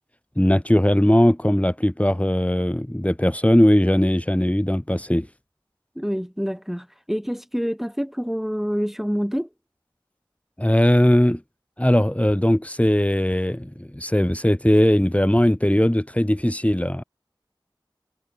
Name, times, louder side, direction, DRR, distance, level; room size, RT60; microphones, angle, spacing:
voice 1, 0.4-5.3 10.6-11.4 11.8-17.0, equal, 15° left, 5.3 m, -19 dB
voice 2, 5.9-9.5, equal, 5° right, 4.8 m, -27 dB
wide cardioid pair, 40°, 9 cm